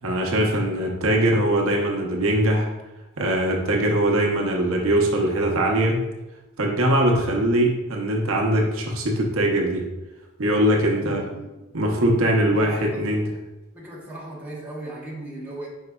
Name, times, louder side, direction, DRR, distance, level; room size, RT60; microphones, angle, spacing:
voice 1, 0.0-2.7 3.2-6.0 6.6-9.9 10.4-11.2 11.7-13.2, right 1 dB, 70° right, -1 dB, 0.8 m, -21 dB
voice 2, 10.9-11.8 12.5-13.3 13.7-15.7, right 1 dB, 10° right, -6 dB, 1.0 m, -37 dB
4.9 x 4.6 x 2.3 m, 1.0 s
head